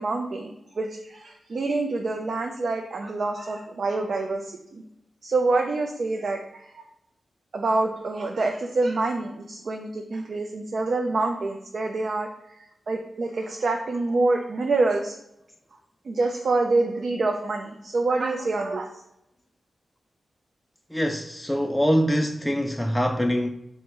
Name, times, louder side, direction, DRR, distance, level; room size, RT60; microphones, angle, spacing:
voice 1, 0.0-4.8 5.2-6.7 7.5-15.2 16.0-19.0, right 3 dB, 60° right, 0.4 m, -26 dB
voice 2, 20.9-23.5, equal, 5° left, 0.3 m, -24 dB
4.8 x 2.1 x 4.4 m
wide cardioid pair, 95°, 0 cm